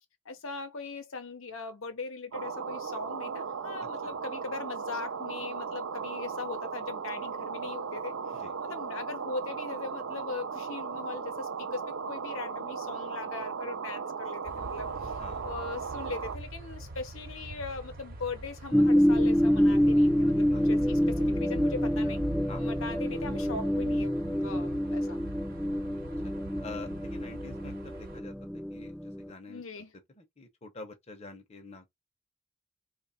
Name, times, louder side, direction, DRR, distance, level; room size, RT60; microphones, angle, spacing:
voice 1, 0.2-22.2 22.5-25.2 29.5-29.9, left 4 dB, 85° left, 0.9 m, -40 dB
sound 1, 2.3-16.4, right 5 dB, 85° right, 0.6 m, -37 dB
voice 2, 3.8-4.1 8.4-8.5 15.2-15.4 20.5-20.6 22.5-22.8 26.6-28.3 28.7-29.8 30.2-31.9, left 3 dB, 30° left, 0.8 m, -46 dB
sound 2, 14.4-28.2, right 1 dB, 45° right, 0.9 m, -43 dB
sound 3, 18.7-29.3, equal, ahead, 0.5 m, -27 dB
3.1 x 2.5 x 4.2 m
head